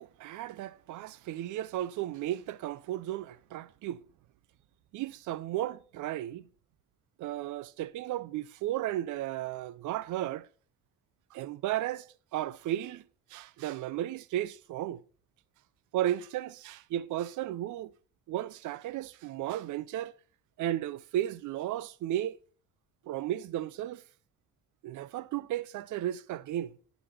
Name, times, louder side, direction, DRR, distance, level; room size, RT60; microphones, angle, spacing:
voice 1, 0.0-4.0 4.9-6.5 7.2-10.5 11.3-13.0 13.3-15.0 15.9-17.9 18.3-20.1 20.6-22.4 23.1-24.0 24.8-26.8, right 13 dB, 80° right, 0.6 m, -34 dB
11.0 x 4.1 x 6.7 m
cardioid pair, 90°, 30 cm